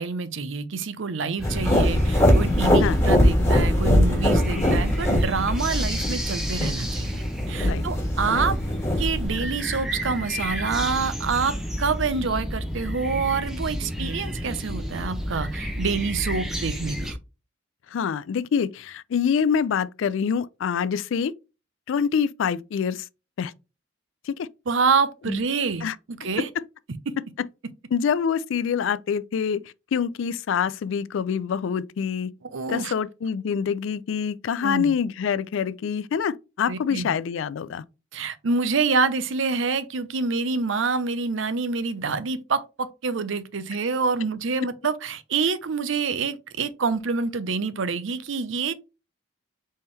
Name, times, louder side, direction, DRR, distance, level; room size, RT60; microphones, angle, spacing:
voice 1, 0.0-7.2 7.5-8.6 9.0-17.2 24.7-26.5 32.4-32.9 34.6-34.9 36.7-37.1 38.1-48.7, right 4 dB, 65° right, 0.6 m, -27 dB
sound 1, 1.4-9.5, equal, 15° left, 1.5 m, -22 dB
sound 2, 1.4-17.1, equal, ahead, 0.7 m, -31 dB
voice 2, 17.9-21.3 21.9-23.0 23.4-23.5 24.3-24.5 25.3-25.4 25.8-26.0 26.6-26.7 27.9-29.6 29.9-32.3 32.7-37.8, left 7 dB, 70° left, 0.3 m, -26 dB
4.2 x 3.6 x 3.2 m
head